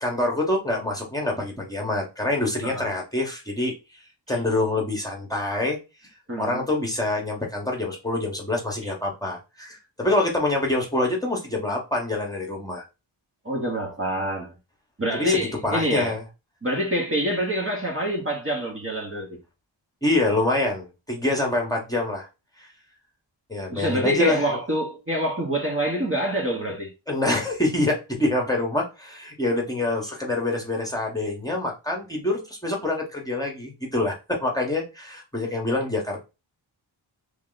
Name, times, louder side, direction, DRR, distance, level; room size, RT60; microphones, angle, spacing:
voice 1, 0.0-3.7 4.3-5.8 6.4-12.8 15.2-15.4 15.6-16.2 20.0-22.3 22.6-22.7 23.5-24.5 27.1-36.2, left 2 dB, 10° left, 1.1 m, -26 dB
voice 2, 6.3-6.6 13.4-14.5 15.0-16.1 16.6-19.4 23.7-26.9, equal, 25° right, 1.0 m, -26 dB
3.3 x 2.9 x 3.8 m
wide cardioid pair, 90°, 48 cm